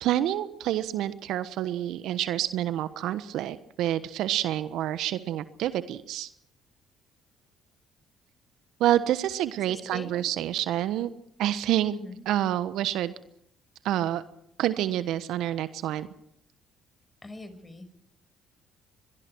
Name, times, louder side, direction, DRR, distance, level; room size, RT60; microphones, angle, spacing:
voice 1, 0.0-6.3 8.8-11.1 11.4-11.9 12.3-13.1 13.8-14.2 14.6-16.1, right 12 dB, 70° right, 14 dB, 1.2 m, -28 dB
voice 2, 9.7-10.3 11.9-12.2 17.2-17.9, left 2 dB, 20° left, 10 dB, 5.6 m, -42 dB
24.0 x 22.5 x 4.7 m, 0.70 s
hypercardioid pair, 50°, 0 cm